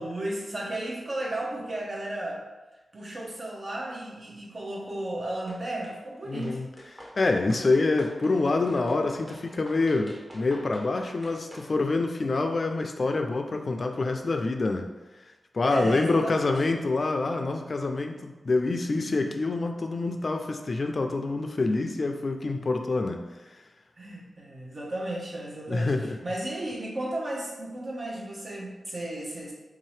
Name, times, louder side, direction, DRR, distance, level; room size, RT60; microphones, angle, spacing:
voice 1, 0.0-2.4 2.9-6.6 15.7-16.5 18.9-19.1 24.0-29.5, right 1 dB, 50° right, -2 dB, 0.9 m, -34 dB
sound 1, 5.5-6.0 6.4-11.7, equal, 20° right, 1.0 m, -47 dB
voice 2, 6.3-6.7 7.0-14.9 15.5-23.2 25.7-26.2, left 3 dB, 55° left, 4 dB, 0.3 m, -26 dB
3.6 x 2.8 x 3.2 m, 1.1 s
cardioid pair, 65°, 0 cm